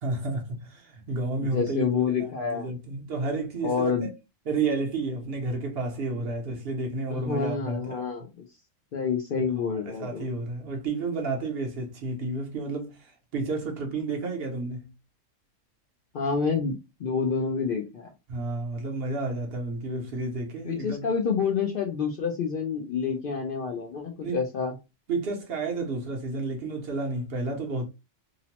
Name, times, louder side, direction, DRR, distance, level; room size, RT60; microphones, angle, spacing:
voice 1, 0.0-4.1 4.5-8.0 9.7-14.9 18.3-21.0 24.2-24.4 25.1-27.8, right 3 dB, 55° right, 0.8 m, -31 dB
voice 2, 1.4-2.7 3.6-4.1 7.1-8.4 8.9-10.2 16.1-16.7 17.0-18.1 20.6-24.7, left 6 dB, 60° left, 0.6 m, -28 dB
2.8 x 2.0 x 2.8 m
omnidirectional pair, 1.3 m